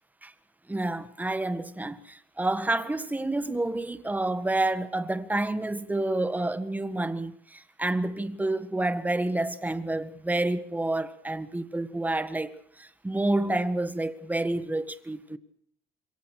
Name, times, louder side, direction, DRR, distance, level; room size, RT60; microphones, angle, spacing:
voice 1, 0.7-15.4, right 2 dB, 10° right, 1.7 m, -29 dB
27.0 x 22.5 x 6.6 m
cardioid pair, 110°, 17 cm